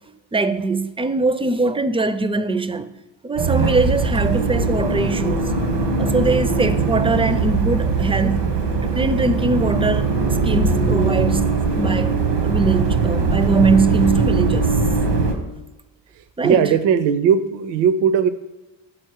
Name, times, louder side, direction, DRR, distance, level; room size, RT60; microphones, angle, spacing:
voice 1, 0.3-2.9 3.2-5.5 6.0-8.5 8.8-10.1 10.4-11.5 11.7-14.7 16.4-16.7, right 3 dB, 15° right, 0.4 m, -21 dB
sound 1, 3.4-15.3, right 4 dB, 85° right, 1.2 m, -20 dB
voice 2, 16.4-18.3, right 7 dB, 70° right, 0.6 m, -18 dB
7.4 x 4.3 x 4.7 m
supercardioid pair, 60°, 45 cm